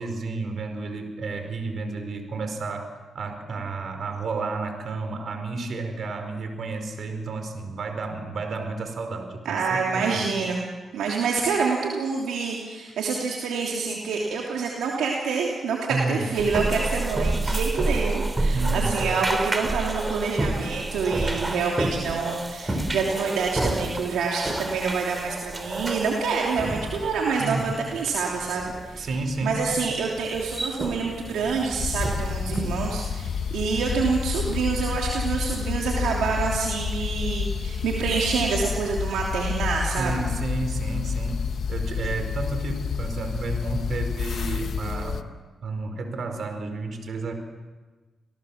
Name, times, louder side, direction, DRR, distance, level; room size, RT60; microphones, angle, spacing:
voice 1, 0.0-10.3 15.9-16.3 18.5-18.9 27.4-27.7 29.0-29.6 39.8-45.2 45.6-47.3, right 3 dB, 65° right, 6 dB, 4.9 m, -31 dB
voice 2, 9.4-10.6 10.9-29.1 29.4-40.1, right 5 dB, 85° right, -2 dB, 3.1 m, -27 dB
sound 1, 16.3-33.5, right 2 dB, 25° right, 3.6 m, -30 dB
sound 2, 31.8-45.2, left 6 dB, 70° left, 1.1 m, -29 dB
28.5 x 18.0 x 7.3 m, 1.3 s
supercardioid pair, 55°, 0 cm